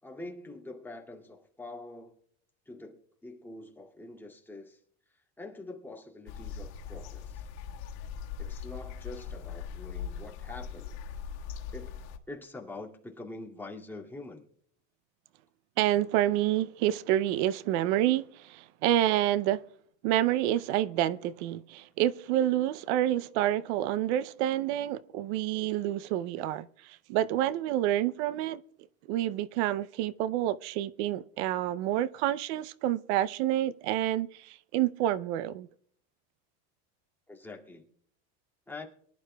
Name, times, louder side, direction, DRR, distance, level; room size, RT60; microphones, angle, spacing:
voice 1, 0.0-2.2 2.7-4.8 5.1-7.5 8.4-11.0 11.7-12.0 12.3-14.5 37.3-37.9 38.7-38.9, left 2 dB, 5° left, 2.3 m, -45 dB
sound 1, 6.3-12.2, left 7 dB, 85° left, 1.6 m, -40 dB
voice 2, 15.8-19.6 20.0-28.6 29.1-35.7, right 13 dB, 80° right, 0.6 m, -28 dB
23.5 x 11.5 x 2.2 m
supercardioid pair, 120°, 33 cm